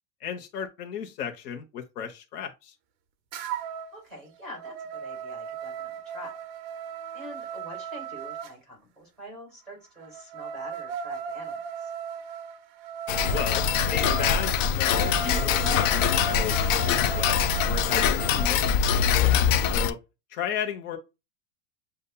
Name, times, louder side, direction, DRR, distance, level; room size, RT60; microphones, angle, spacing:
voice 1, 0.2-2.7 13.3-20.0 20.3-21.0, left 8 dB, 75° left, 1.2 m, -34 dB
sound 1, 3.3-3.9 4.3-8.5 10.0-18.6, right 6 dB, 40° right, 0.5 m, -36 dB
voice 2, 3.9-6.3 7.1-11.9, equal, ahead, 2.5 m, -45 dB
Tick-tock, 13.1-19.9, left 8 dB, 55° left, 0.5 m, -23 dB
6.7 x 2.7 x 2.3 m
supercardioid pair, 180°, 48 cm